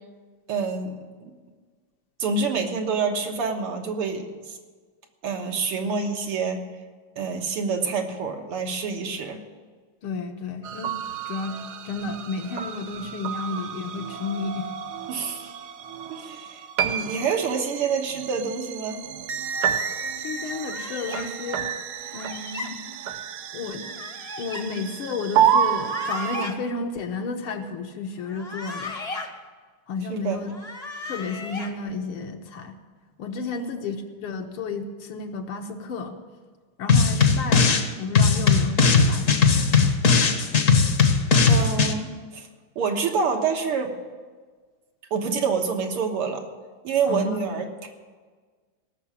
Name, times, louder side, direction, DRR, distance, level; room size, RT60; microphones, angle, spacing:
voice 1, 0.5-1.3 2.2-4.6 5.2-6.6 7.2-9.4 15.1-15.5 16.1-19.1 30.1-30.4 33.4-33.7 41.5-42.5 42.8-43.9 45.1-46.4 46.8-47.9, right 5 dB, 85° right, 3 dB, 2.3 m, -27 dB
voice 2, 10.0-10.9 11.3-11.6 11.9-14.7 20.2-21.7 22.1-22.8 23.5-23.9 24.4-28.9 29.9-30.6 31.1-32.8 33.2-36.2 36.8-40.0 47.1-47.5, left 4 dB, 75° left, 4 dB, 2.0 m, -32 dB
sound 1, 10.6-26.5, right 8 dB, 65° right, 1.0 m, -29 dB
sound 2, 20.7-21.3 22.1-22.7 23.8-24.6 25.7-26.5 28.2-29.3 30.4-31.7, left 3 dB, 25° left, 0.8 m, -36 dB
sound 3, 36.9-37.9 38.1-41.9, left 4 dB, 45° left, 1.1 m, -18 dB
17.5 x 6.7 x 8.7 m, 1.5 s
omnidirectional pair, 2.4 m